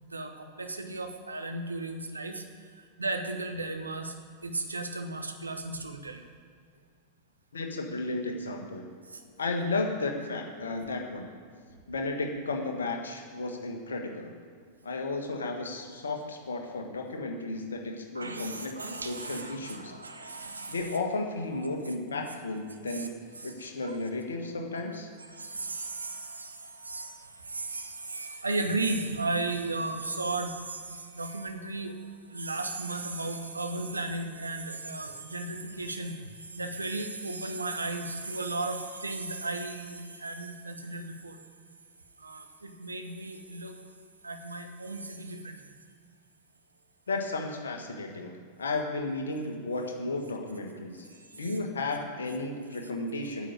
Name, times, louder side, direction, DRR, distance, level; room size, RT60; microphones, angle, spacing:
voice 1, 0.0-2.4 2.7-4.2 4.4-6.2 9.1-9.2 18.1-21.0 21.6-21.7 22.9-23.1 23.4-24.0 25.3-32.0 32.3-41.4 42.2-43.8 44.2-45.7 51.1-51.5, right 2 dB, 80° right, 5 dB, 1.1 m, -35 dB
voice 2, 7.5-8.8 9.4-11.3 11.9-14.3 14.8-18.7 19.0-19.9 20.7-23.1 23.4-25.1 47.1-48.3 48.6-51.1 51.4-53.5, left 2 dB, 70° left, 3 dB, 1.6 m, -33 dB
9.2 x 7.3 x 8.7 m, 2.1 s
figure-of-eight pair, 90°, 0 cm